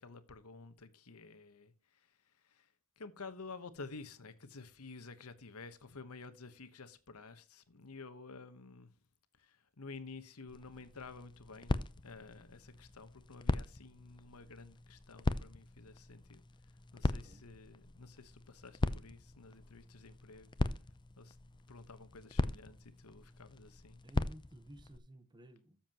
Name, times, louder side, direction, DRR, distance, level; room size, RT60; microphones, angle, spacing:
voice 1, 0.0-8.9 9.4-11.7 12.0-16.4 16.9-20.5 21.2-21.4 21.7-24.0, left 4 dB, 75° left, 1.1 m, -52 dB
sound 1, 10.5-25.0, left 2 dB, 20° left, 0.5 m, -40 dB
voice 2, 17.0-17.4 24.0-25.8, right 1 dB, 20° right, 1.0 m, -55 dB
13.0 x 7.2 x 2.9 m
head